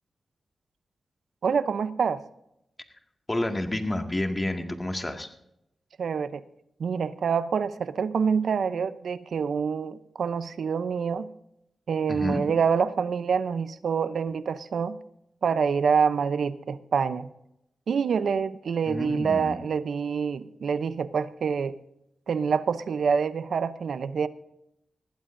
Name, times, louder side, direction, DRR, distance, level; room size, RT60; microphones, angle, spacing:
voice 1, 1.4-2.2 6.0-6.4 6.8-11.3 11.9-15.0 15.4-17.3 17.9-21.8 22.3-24.3, right 6 dB, 75° right, 13 dB, 0.7 m, -26 dB
voice 2, 3.3-5.3 12.1-12.4 18.8-19.6, left 1 dB, 25° left, 4 dB, 2.1 m, -29 dB
20.5 x 15.0 x 2.7 m, 0.81 s
cardioid pair, 60°, 0 cm